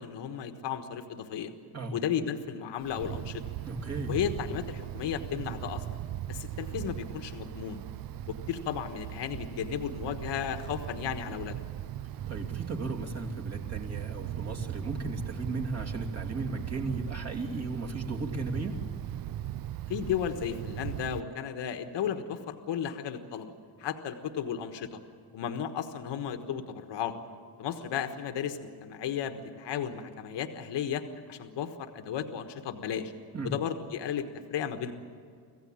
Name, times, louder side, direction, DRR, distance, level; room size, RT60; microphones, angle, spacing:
voice 1, 0.0-1.5 1.9-3.4 4.1-5.8 6.3-7.8 8.5-11.6 19.9-23.5 23.8-25.0 25.3-27.2 27.6-31.0 31.3-33.1 33.4-34.2 34.5-34.9, left 8 dB, 80° left, 7 dB, 1.5 m, -34 dB
Wind, 2.8-21.2, right 12 dB, 55° right, 0.5 m, -39 dB
voice 2, 3.6-4.2 12.3-18.8 33.3-33.5, right 3 dB, 35° right, 2 dB, 2.8 m, -35 dB
25.5 x 16.0 x 8.8 m, 2.3 s
cardioid pair, 155°, 42 cm